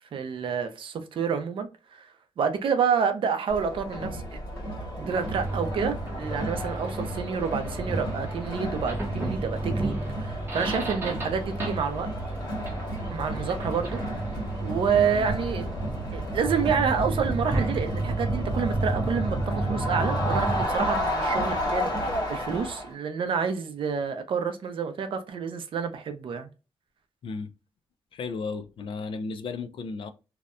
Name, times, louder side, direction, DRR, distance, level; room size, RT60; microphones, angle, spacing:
voice 1, 0.1-2.1 2.4-4.4 5.0-12.1 13.1-14.0 14.6-15.7 16.1-26.5, right 6 dB, 65° right, 0.5 m, -28 dB
Crowd, 3.5-22.9, equal, 45° left, 1.4 m, -32 dB
sound 1, 5.0-20.6, right 2 dB, 25° right, 0.6 m, -32 dB
voice 2, 28.1-30.1, left 4 dB, 65° left, 0.3 m, -34 dB
2.7 x 2.1 x 2.4 m
wide cardioid pair, 180°, 9 cm